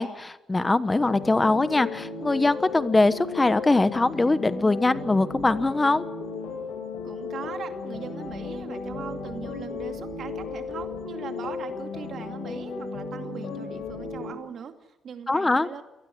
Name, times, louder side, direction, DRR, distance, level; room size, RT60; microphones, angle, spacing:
voice 1, 0.0-6.0 15.3-15.7, left 2 dB, 20° left, 13 dB, 1.1 m, -22 dB
sound 1, 1.0-14.3, left 4 dB, 75° left, 5.5 m, -35 dB
sound 2, 2.8-2.9 3.3-3.8 4.0-4.2 4.5-5.9 6.2-6.7 7.0-7.1 7.4-11.0 11.3-11.4 11.7-12.2 12.5-12.6 12.9-14.2, right 2 dB, 20° right, 7.8 m, -52 dB
voice 2, 7.0-15.8, right 7 dB, 60° right, 6 dB, 2.5 m, -40 dB
28.0 x 19.5 x 8.0 m, 0.94 s
cardioid pair, 90°, 0 cm